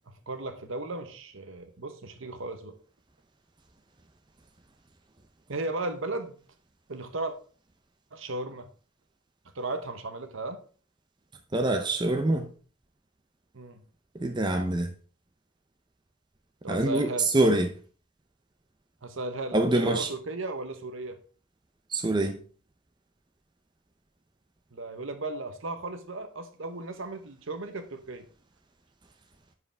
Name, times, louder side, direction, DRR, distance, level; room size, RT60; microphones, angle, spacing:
voice 1, 0.1-2.7 5.5-6.4 6.9-7.3 8.1-8.7 9.5-10.6 13.5-13.8 16.6-17.3 19.0-21.2 24.7-28.3, right 2 dB, 60° right, 0.9 m, -35 dB
voice 2, 11.5-12.5 14.1-14.9 16.7-17.7 19.5-20.1 21.9-22.4, right 2 dB, 20° right, 0.5 m, -25 dB
10.5 x 4.9 x 3.4 m
head